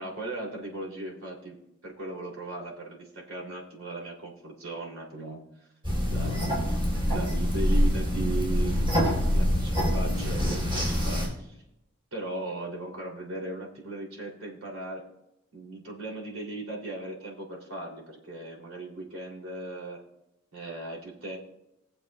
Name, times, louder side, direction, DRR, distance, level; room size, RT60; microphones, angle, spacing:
voice 1, 0.0-1.6 1.8-5.4 6.0-6.6 7.1-8.9 9.3-11.6 12.1-15.0 15.5-20.0 20.5-21.4, right 2 dB, 85° right, -2 dB, 3.0 m, -37 dB
sound 1, 5.8-11.3, equal, 25° right, 4.4 m, -25 dB
20.0 x 7.5 x 2.3 m, 0.85 s
head